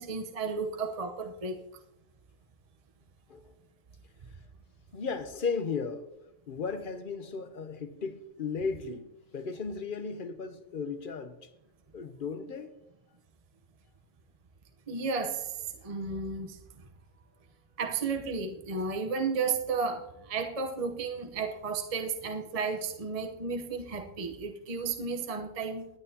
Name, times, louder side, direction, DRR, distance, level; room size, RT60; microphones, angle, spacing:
voice 1, 0.0-1.6 14.9-15.5 15.8-16.6 17.8-25.9, right 4 dB, 30° right, 0.8 m, -33 dB
voice 2, 4.9-6.0 6.5-9.1 9.3-11.5 11.9-12.7, left 5 dB, 45° left, 0.9 m, -35 dB
21.0 x 9.1 x 2.8 m
omnidirectional pair, 1.5 m